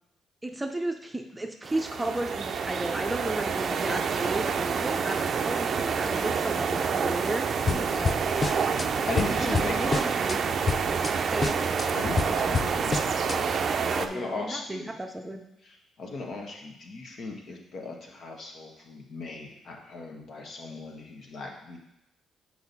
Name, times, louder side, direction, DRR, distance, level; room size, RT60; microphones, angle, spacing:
voice 1, 0.4-7.6 7.9-8.2 9.2-10.4 11.3-11.6 13.8-15.4, right 1 dB, 10° right, 4 dB, 0.6 m, -33 dB
sound 1, 1.6-14.1, right 6 dB, 55° right, 0.4 m, -28 dB
voice 2, 7.6-8.0 9.0-10.1 11.9-13.6 14.0-14.9 15.6-21.8, left 3 dB, 60° left, 0 dB, 1.3 m, -37 dB
sound 2, 7.7-8.9 9.2-10.4 10.7-11.1 11.4-13.4, left 5 dB, 30° left, 0.4 m, -29 dB
6.4 x 4.8 x 4.1 m, 0.87 s
cardioid pair, 90°, 0 cm